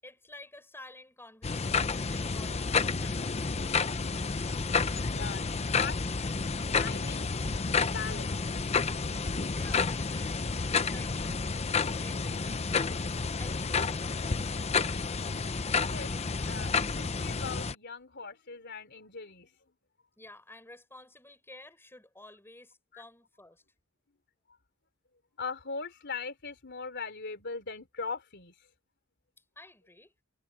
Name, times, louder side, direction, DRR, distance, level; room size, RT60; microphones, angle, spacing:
voice 1, 0.0-3.4 9.5-11.4 11.9-12.4 13.4-14.5 20.2-23.6 29.5-30.1, left 2 dB, 10° left, 6.7 m, -52 dB
sound 1, 1.4-17.7, left 4 dB, 30° left, 0.7 m, -30 dB
voice 2, 5.1-6.3 6.7-8.4 15.9-16.1 16.4-19.5 22.9-23.0 25.4-28.7, left 5 dB, 55° left, 3.5 m, -40 dB
head